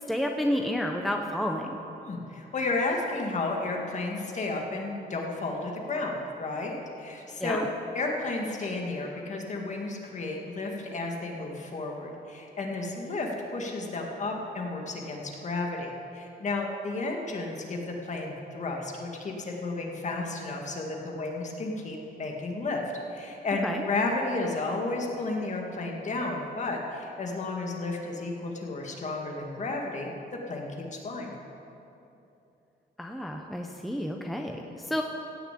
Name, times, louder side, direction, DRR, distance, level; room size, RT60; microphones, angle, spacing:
voice 1, 0.1-1.7 7.4-7.7 23.6-23.8 33.0-35.0, equal, ahead, 2 dB, 0.7 m, -30 dB
voice 2, 2.0-7.6 7.9-22.8 23.1-31.3, left 2 dB, 40° left, 1 dB, 2.0 m, -32 dB
16.0 x 7.1 x 8.4 m, 2.8 s
wide cardioid pair, 145°, 18 cm